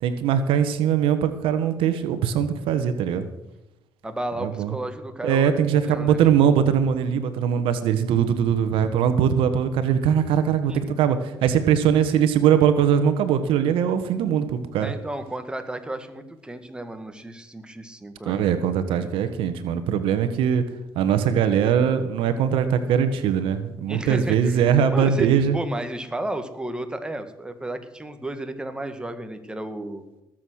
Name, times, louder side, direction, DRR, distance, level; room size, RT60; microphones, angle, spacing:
voice 1, 0.0-3.3 4.4-4.7 5.2-14.9 18.3-20.6 20.9-25.6, right 8 dB, 80° right, 10 dB, 1.3 m, -21 dB
voice 2, 4.0-6.2 10.7-10.8 14.8-18.6 23.9-24.6 24.9-30.0, right 1 dB, 10° right, 7 dB, 1.9 m, -33 dB
19.5 x 7.6 x 6.4 m, 0.95 s
supercardioid pair, 75°, 9 cm